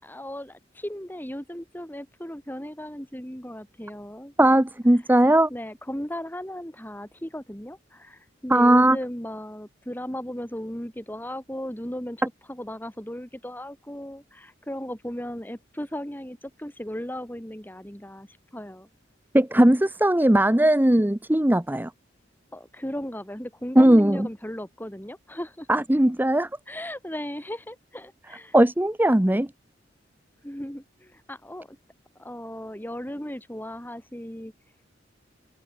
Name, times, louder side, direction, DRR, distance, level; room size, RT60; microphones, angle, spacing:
voice 1, 0.0-4.3 5.2-12.2 12.5-18.9 22.5-25.7 26.7-28.6 30.4-31.8 32.2-34.5, equal, 10° left, 4.6 m, -36 dB
voice 2, 4.4-5.5 8.5-9.0 19.3-21.9 23.8-24.3 25.7-26.5 28.5-29.5, right 1 dB, 10° right, 0.8 m, -18 dB
head